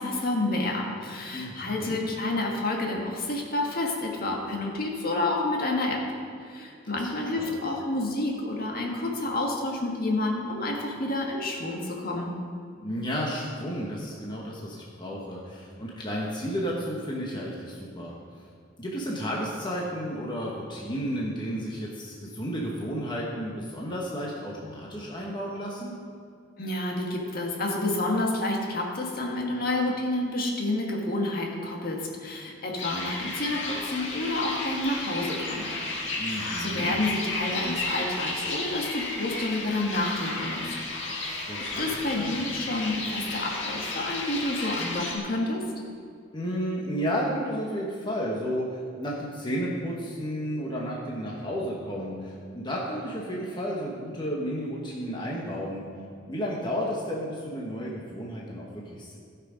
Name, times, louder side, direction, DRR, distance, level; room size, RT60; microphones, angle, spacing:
voice 1, 0.0-6.0 6.4-12.3 26.6-35.8 36.2-40.7 41.1-41.5 41.8-45.6, left 2 dB, 50° left, -1 dB, 1.8 m, -29 dB
voice 2, 1.3-2.0 7.3-7.5 12.8-18.1 18.8-25.9 36.2-37.0 41.5-41.9 42.2-42.5 46.3-55.8 56.3-59.2, equal, 25° left, -4 dB, 1.3 m, -32 dB
sound 1, 32.8-45.2, left 2 dB, 90° left, 2.1 m, -33 dB
16.5 x 5.9 x 5.0 m, 2.3 s
head